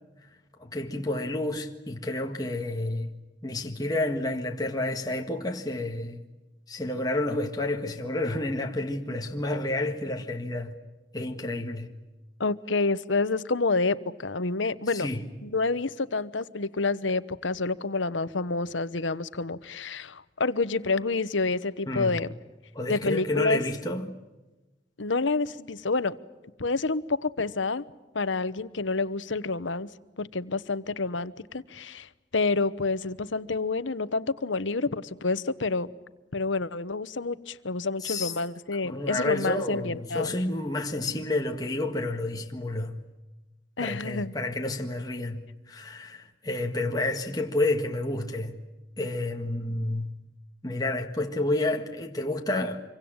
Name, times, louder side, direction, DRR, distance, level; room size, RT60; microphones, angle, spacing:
voice 1, 0.6-3.1 3.4-6.2 6.7-10.8 11.1-11.9 14.9-15.2 21.9-22.2 22.8-24.1 38.0-38.3 38.8-43.0 43.8-48.6 49.0-50.1 50.6-52.8, left 2 dB, 20° left, 1.7 m, -30 dB
voice 2, 12.4-15.1 15.4-22.3 22.9-23.6 25.0-26.2 26.6-27.8 28.1-29.9 30.2-35.9 36.3-40.3 43.8-44.3, left 3 dB, 90° left, 1.1 m, -28 dB
26.0 x 24.0 x 8.9 m
head